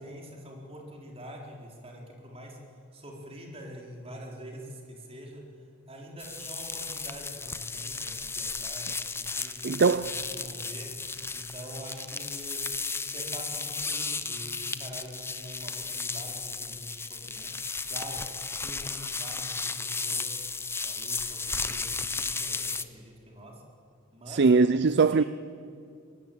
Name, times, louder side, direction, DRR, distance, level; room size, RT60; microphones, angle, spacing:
voice 1, 0.0-2.6 2.9-5.4 5.9-10.9 11.3-12.6 13.1-17.5 17.9-18.2 18.5-20.4 20.8-23.6 24.1-24.4 24.8-25.3, equal, 30° right, 4.4 m, -45 dB
sound 1, 6.2-22.8, left 4 dB, 10° left, 0.8 m, -34 dB
voice 2, 9.6-10.1 24.3-25.2, right 4 dB, 55° right, 0.5 m, -21 dB
24.5 x 20.0 x 8.8 m
head